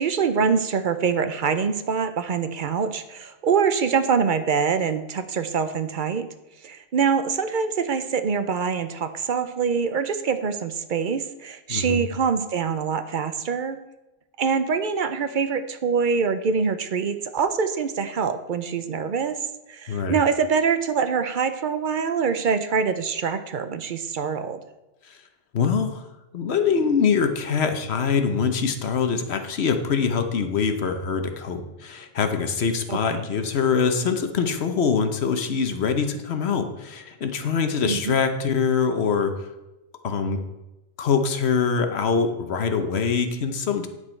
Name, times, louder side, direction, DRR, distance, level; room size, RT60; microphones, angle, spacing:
voice 1, 0.0-6.3 6.6-13.8 14.4-19.4 19.7-24.6 32.9-33.3 37.9-38.2, right 6 dB, 55° right, 10 dB, 0.6 m, -24 dB
voice 2, 11.7-12.0 19.9-20.2 25.1-25.2 25.5-26.1 26.3-39.5 40.0-40.4 41.0-43.9, left 6 dB, 60° left, 7 dB, 1.1 m, -24 dB
9.8 x 6.2 x 4.4 m, 1.0 s
omnidirectional pair, 1.2 m